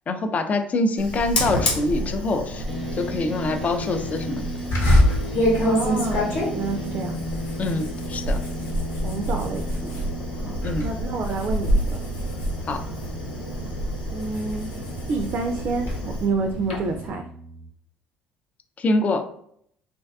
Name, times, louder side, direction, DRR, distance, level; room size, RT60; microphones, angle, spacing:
voice 1, 0.1-2.6 3.0-4.5 7.6-8.4 10.6-10.9 12.7-12.8 18.8-19.2, left 2 dB, 35° left, 7 dB, 0.3 m, -25 dB
Fire, 1.0-17.1, equal, 90° left, 0.5 m, -30 dB
sound 1, 2.7-17.7, equal, ahead, 0.7 m, -36 dB
sound 2, 4.7-10.1 10.5-10.9 11.2-13.3 13.8-16.0, left 1 dB, 60° left, 1.0 m, -25 dB
voice 2, 5.6-7.2 9.0-10.1 10.4-12.0 14.1-14.7 15.1-17.2, right 3 dB, 45° right, 5 dB, 0.3 m, -29 dB
2.5 x 2.2 x 2.3 m, 0.67 s
hypercardioid pair, 60°, 4 cm